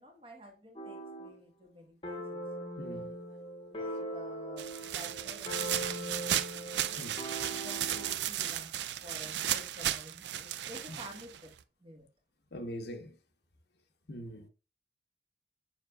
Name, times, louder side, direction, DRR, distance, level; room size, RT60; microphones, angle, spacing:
voice 1, 0.0-2.4 3.7-7.1 7.5-11.5 11.8-12.1, equal, 30° right, 1.4 m, -51 dB
sound 1, 0.8-1.4 2.0-8.3, right 1 dB, 30° left, 1.0 m, -41 dB
voice 2, 2.8-3.1 7.0-7.2 12.5-13.2 14.1-14.5, equal, 70° left, 0.9 m, -42 dB
sound 2, 4.6-11.6, right 11 dB, 80° right, 0.4 m, -35 dB
7.1 x 5.8 x 2.3 m
head